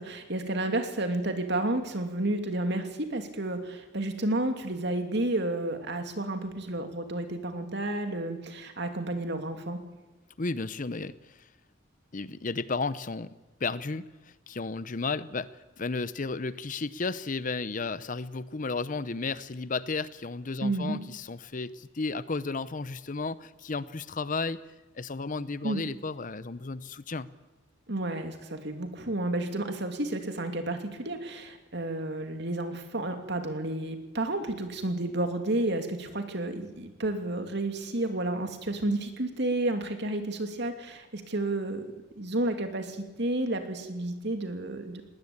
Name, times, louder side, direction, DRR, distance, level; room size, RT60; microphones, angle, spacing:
voice 1, 0.0-9.8 20.6-21.0 25.6-25.8 27.9-41.8 42.2-45.0, right 2 dB, 60° right, 6 dB, 2.8 m, -31 dB
voice 2, 10.4-11.5 12.1-13.3 13.6-24.6 24.9-27.3, left 3 dB, 40° left, 16 dB, 0.7 m, -33 dB
20.5 x 19.0 x 8.8 m, 1.1 s
head